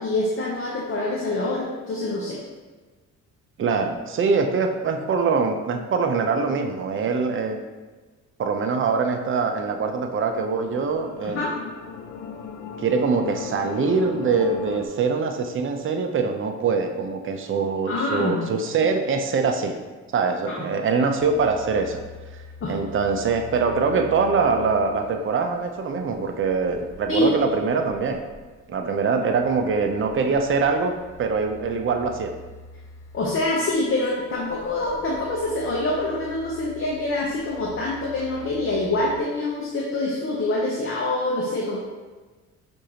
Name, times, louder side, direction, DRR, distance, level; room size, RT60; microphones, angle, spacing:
voice 1, 0.0-2.4 11.2-11.5 17.9-18.4 20.5-20.6 22.6-22.7 27.1-27.3 33.1-41.8, left 2 dB, 45° left, -4 dB, 0.8 m, -25 dB
voice 2, 3.6-7.6 8.4-11.4 12.8-19.7 20.1-22.0 22.7-28.2 28.7-32.3, right 4 dB, 45° right, 5 dB, 0.5 m, -23 dB
sound 1, 9.2-14.9, left 5 dB, 75° left, 0.5 m, -38 dB
sound 2, 21.2-39.2, left 2 dB, 10° left, 0.7 m, -46 dB
6.3 x 2.6 x 2.8 m, 1.3 s
cardioid pair, 90°, 30 cm